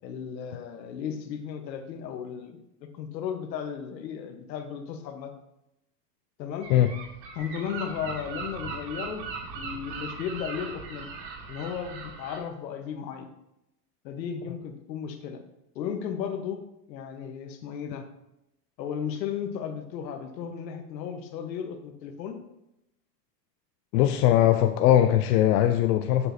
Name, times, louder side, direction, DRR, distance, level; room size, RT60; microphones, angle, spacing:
voice 1, 0.0-2.6 2.9-5.3 6.4-6.7 7.3-9.2 9.5-11.1 11.5-13.3 14.0-15.4 15.7-16.6 16.9-18.0 18.8-22.4, left 8 dB, 85° left, 6 dB, 1.2 m, -35 dB
Gull seagull, 6.6-12.4, right 5 dB, 80° right, 1.7 m, -39 dB
voice 2, 23.9-26.3, left 12 dB, 70° left, 7 dB, 0.6 m, -20 dB
7.8 x 6.0 x 2.7 m, 0.85 s
supercardioid pair, 130°, 50 cm